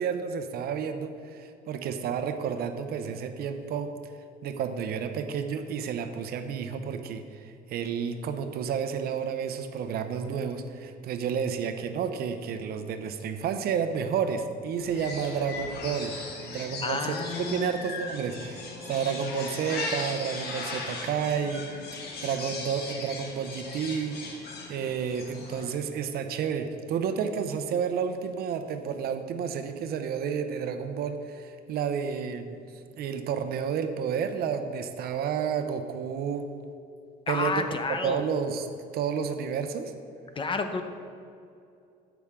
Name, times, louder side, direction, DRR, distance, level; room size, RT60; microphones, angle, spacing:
voice 1, 0.0-3.9 4.4-16.1 16.4-21.7 21.9-32.6 33.0-36.5 37.3-37.6 38.0-38.7 38.9-39.9, right 7 dB, 65° right, 8 dB, 0.8 m, -31 dB
sound 1, 14.8-25.7, left 3 dB, 70° left, 1.6 m, -38 dB
voice 2, 16.8-17.7 18.4-18.5 37.3-38.2 40.4-40.8, left 4 dB, 30° left, 7 dB, 0.8 m, -30 dB
15.0 x 6.0 x 3.7 m, 2.5 s
cardioid pair, 110°, 17 cm